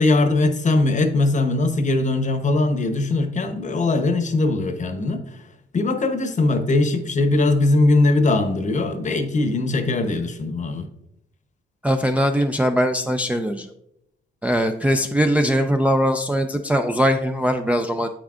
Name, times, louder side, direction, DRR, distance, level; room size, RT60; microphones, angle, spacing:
voice 1, 0.0-5.4 5.7-10.9, left 2 dB, 40° left, 8 dB, 0.9 m, -20 dB
voice 2, 11.8-13.7 14.4-18.1, equal, 5° right, 4 dB, 0.4 m, -21 dB
8.1 x 6.0 x 2.4 m, 0.78 s
cardioid pair, 90°, 20 cm